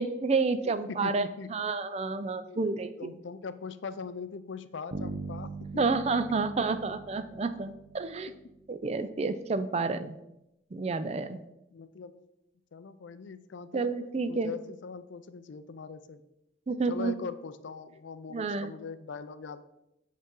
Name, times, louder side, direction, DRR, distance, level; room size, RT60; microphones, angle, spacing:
voice 1, 0.0-3.1 5.8-8.3 8.7-10.2 10.7-11.4 13.7-14.5 16.7-17.1 18.3-18.7, right 4 dB, 30° right, 11 dB, 0.4 m, -30 dB
voice 2, 0.6-1.5 2.5-2.7 3.0-5.8 8.3-8.4 11.7-12.2 12.7-13.9 14.3-16.2 16.9-19.6, left 5 dB, 70° left, 13 dB, 0.4 m, -41 dB
Bass guitar, 4.9-8.7, right 3 dB, 65° right, 0.7 m, -41 dB
6.7 x 5.3 x 3.7 m, 0.89 s
head